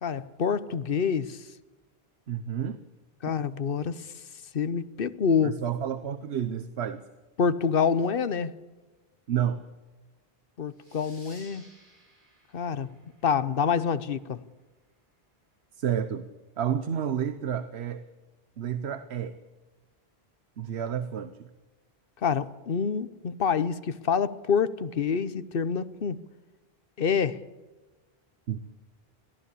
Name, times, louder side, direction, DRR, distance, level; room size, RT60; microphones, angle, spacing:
voice 1, 0.0-1.4 3.2-4.1 4.5-5.6 7.4-8.5 10.6-11.6 12.5-12.9 13.2-14.4 22.2-26.2 27.0-27.4, left 6 dB, 60° left, 1.1 m, -27 dB
voice 2, 2.3-2.8 5.4-7.0 9.3-9.6 15.8-16.3 16.6-18.1 18.6-19.4 20.6-21.5 28.5-28.6, right 9 dB, 85° right, 1.1 m, -30 dB
sound 1, 10.8-14.0, right 1 dB, 50° right, 7.3 m, -56 dB
22.0 x 15.5 x 8.4 m
omnidirectional pair, 1.1 m